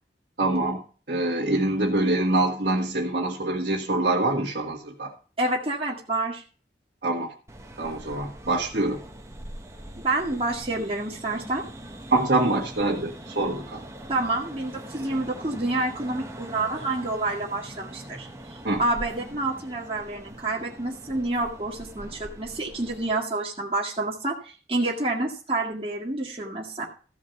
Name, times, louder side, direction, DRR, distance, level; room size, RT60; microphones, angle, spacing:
voice 1, 0.4-0.8 1.1-5.1 7.0-7.3 7.8-9.0 12.1-13.8 18.6-18.8, right 2 dB, 55° right, -4 dB, 1.8 m, -25 dB
voice 2, 5.4-6.4 10.0-11.6 14.1-26.9, right 2 dB, 30° right, -3 dB, 1.9 m, -28 dB
sound 1, 7.5-23.1, right 1 dB, 15° right, 1.2 m, -42 dB
14.0 x 5.0 x 7.0 m, 0.39 s
head